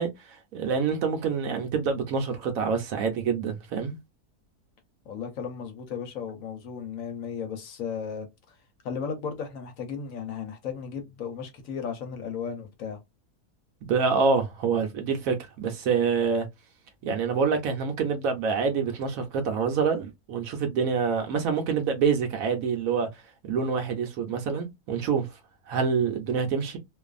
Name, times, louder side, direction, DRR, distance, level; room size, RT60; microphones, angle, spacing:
voice 1, 0.0-4.0 13.8-16.5 17.0-23.1 23.5-25.3 25.7-26.8, right 5 dB, 70° right, 1.0 m, -26 dB
voice 2, 5.1-8.3 8.8-13.0, left 6 dB, 65° left, 1.0 m, -35 dB
2.5 x 2.4 x 2.3 m
omnidirectional pair, 1.6 m